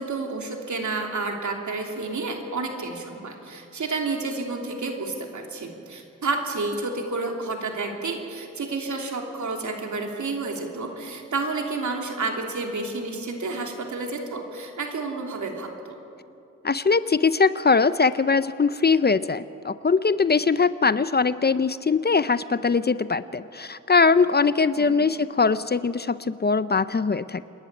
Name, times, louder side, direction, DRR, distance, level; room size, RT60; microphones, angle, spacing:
voice 1, 0.0-16.0 24.8-25.0, right 3 dB, 70° right, 2 dB, 3.2 m, -30 dB
voice 2, 16.6-27.4, left 4 dB, 35° left, 15 dB, 0.6 m, -21 dB
27.0 x 11.5 x 9.8 m, 2.6 s
cardioid pair, 65°, 31 cm